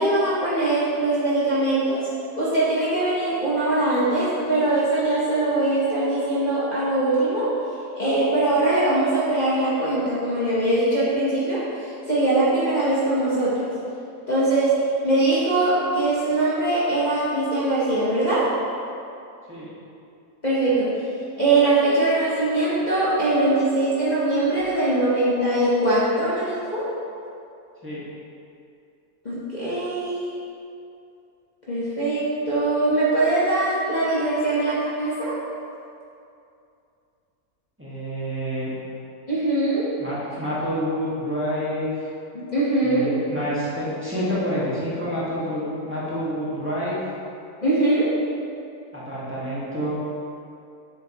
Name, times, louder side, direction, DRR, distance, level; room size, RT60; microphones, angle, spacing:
voice 1, 0.0-2.1 2.4-7.5 7.9-13.7 14.3-14.7 15.0-18.5 20.4-20.9 21.4-26.9 29.2-30.3 31.7-35.3 39.3-39.9 42.3-43.1 47.6-48.1, right 2 dB, 30° left, -10 dB, 1.4 m, -22 dB
voice 2, 37.8-38.7 40.0-42.1 42.8-47.1 48.9-50.0, equal, 10° right, -10 dB, 1.7 m, -28 dB
7.3 x 7.3 x 3.1 m, 2.6 s
omnidirectional pair, 1.5 m